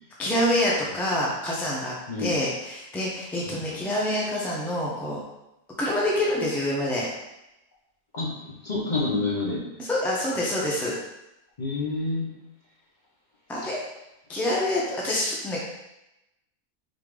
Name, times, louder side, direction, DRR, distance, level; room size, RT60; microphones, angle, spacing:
voice 1, 0.2-1.9 2.2-5.2 5.8-7.1 9.8-10.9 13.5-13.8 14.3-15.6, left 1 dB, ahead, -5 dB, 0.4 m, -26 dB
voice 2, 8.6-9.6 11.6-12.3, left 3 dB, 35° left, -5 dB, 1.0 m, -27 dB
4.1 x 3.8 x 3.3 m, 0.92 s
omnidirectional pair, 1.5 m